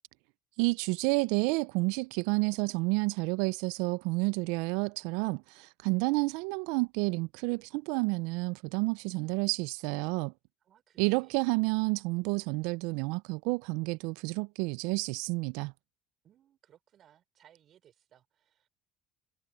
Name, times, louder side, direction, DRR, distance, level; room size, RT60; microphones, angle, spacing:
voice 1, 0.6-10.3 11.0-15.7, right 26 dB, 75° right, 0.5 m, -30 dB
voice 2, 10.6-11.5 16.2-18.7, right 10 dB, 50° right, 6.0 m, -63 dB
hypercardioid pair, 70°, 0 cm